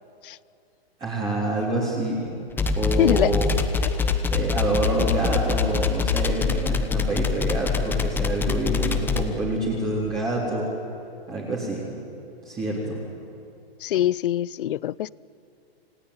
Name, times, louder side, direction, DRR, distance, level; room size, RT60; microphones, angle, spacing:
voice 1, 1.0-2.4 2.7-3.5 4.3-10.7 11.3-11.9 12.4-13.0, right 2 dB, 15° right, 3.6 m, -27 dB
sound 1, 2.5-9.2, left 5 dB, 5° left, 0.9 m, -24 dB
voice 2, 3.0-3.3 13.8-15.1, left 12 dB, 55° left, 0.6 m, -23 dB
28.0 x 17.0 x 9.7 m
hypercardioid pair, 155°, 31 cm